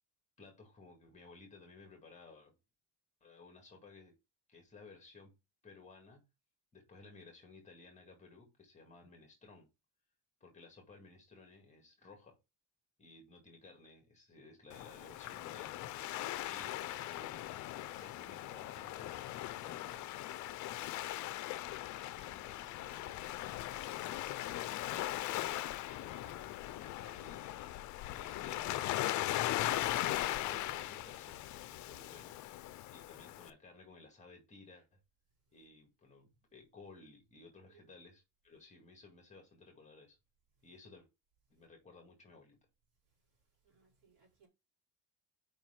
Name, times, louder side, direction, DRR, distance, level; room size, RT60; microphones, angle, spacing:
voice 1, 0.4-2.5 3.2-4.1 4.5-5.3 5.6-6.3 6.7-9.7 10.4-12.4 13.0-15.8 16.2-17.5 17.9-20.1 22.2-27.7 28.1-29.5 30.2-32.4 32.9-35.0 35.5-40.2 40.6-41.1 41.5-42.6, left 3 dB, 20° left, 2.0 m, -57 dB
Waves surf, 14.7-33.5, left 15 dB, 55° left, 0.6 m, -39 dB
voice 2, 22.1-22.9 43.6-44.5, right 5 dB, 55° right, 4.1 m, -70 dB
5.2 x 4.6 x 5.8 m
cardioid pair, 150°, 36 cm